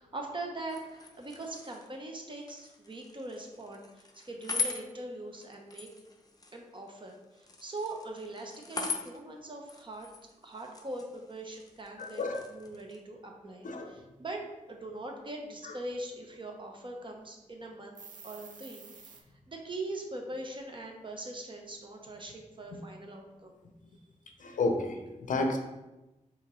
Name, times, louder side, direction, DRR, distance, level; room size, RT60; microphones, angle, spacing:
voice 1, 0.0-5.9 6.5-10.1 10.4-12.2 12.5-18.0 18.2-19.1 19.5-23.6, right 2 dB, 35° right, 2 dB, 0.8 m, -42 dB
sound 1, 0.6-13.0, left 4 dB, 30° left, 0.6 m, -42 dB
voice 2, 12.0-12.4 13.6-13.9 15.6-15.7 24.4-25.6, left 2 dB, 70° left, 5 dB, 0.6 m, -31 dB
sound 2, 18.0-19.2, right 5 dB, 70° right, 0.5 m, -49 dB
4.8 x 3.0 x 3.1 m, 1.0 s
cardioid pair, 65°, 14 cm